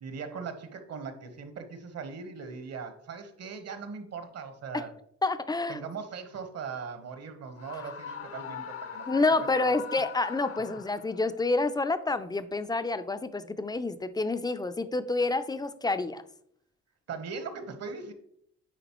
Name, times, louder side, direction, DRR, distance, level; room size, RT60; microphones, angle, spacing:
voice 1, 0.0-4.9 5.7-9.8 17.1-18.1, right 5 dB, 60° right, 8 dB, 1.1 m, -40 dB
voice 2, 5.2-5.8 9.1-16.2, left 3 dB, 15° left, 12 dB, 0.4 m, -28 dB
Screaming, 7.6-11.3, left 8 dB, 50° left, 0.6 m, -41 dB
9.2 x 3.9 x 3.0 m, 0.69 s
cardioid pair, 90°, 30 cm